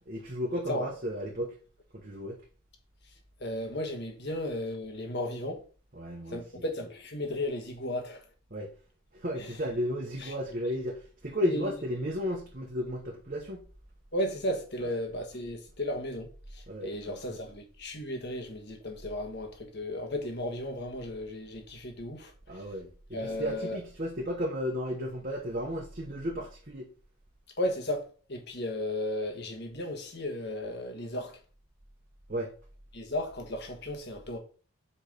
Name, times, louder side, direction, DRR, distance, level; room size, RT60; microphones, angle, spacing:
voice 1, 0.1-1.5 1.9-2.4 6.0-6.4 8.5-8.7 9.1-13.6 16.7-17.4 22.5-26.9 32.3-32.5, equal, 40° right, 1.0 m, -34 dB
voice 2, 3.4-5.6 6.3-8.2 9.4-9.6 10.2-10.3 11.4-11.7 14.1-22.7 23.1-23.8 27.6-31.4 32.9-34.4, left 1 dB, 50° left, 1.5 m, -35 dB
5.5 x 4.8 x 5.1 m
head